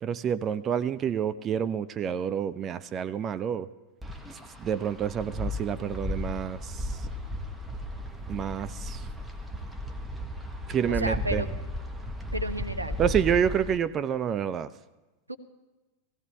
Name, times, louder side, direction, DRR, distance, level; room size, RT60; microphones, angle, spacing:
voice 1, 0.0-3.7 4.6-7.0 8.3-9.1 10.7-11.4 13.0-14.7, right 8 dB, 30° right, 15 dB, 0.4 m, -28 dB
Wind, 4.0-13.8, equal, 5° right, 1.3 m, -35 dB
voice 2, 10.9-11.5 12.3-13.0 15.3-15.4, right 1 dB, 85° right, 9 dB, 0.8 m, -32 dB
16.5 x 16.0 x 3.3 m, 1.1 s
figure-of-eight pair, 90°, 0 cm